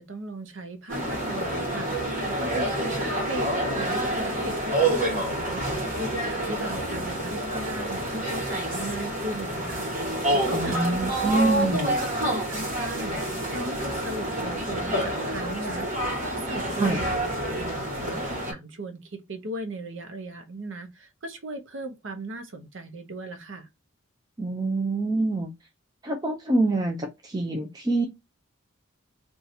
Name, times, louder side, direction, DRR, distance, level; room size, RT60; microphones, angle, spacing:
voice 1, 0.0-3.5 3.7-9.9 10.3-11.1 11.5-12.0 12.3-15.9 16.2-17.2 17.5-23.7, right 1 dB, 65° right, 0.7 m, -37 dB
sound 1, 0.9-18.5, right 1 dB, 40° right, 1.4 m, -28 dB
voice 2, 10.5-12.0 16.8-17.0 24.4-25.5 26.0-28.1, right 2 dB, 20° right, 0.4 m, -25 dB
2.7 x 2.3 x 4.1 m
head